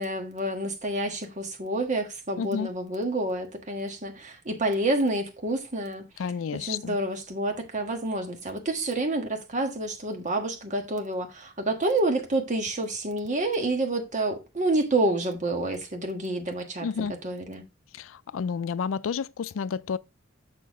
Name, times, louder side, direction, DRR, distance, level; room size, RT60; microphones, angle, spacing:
voice 1, 0.0-6.0 6.6-17.6, right 2 dB, 40° right, 1.5 m, -28 dB
voice 2, 2.4-2.7 6.2-7.0 16.8-17.1 17.9-20.0, left 6 dB, 90° left, 0.4 m, -30 dB
6.8 x 6.5 x 3.6 m
head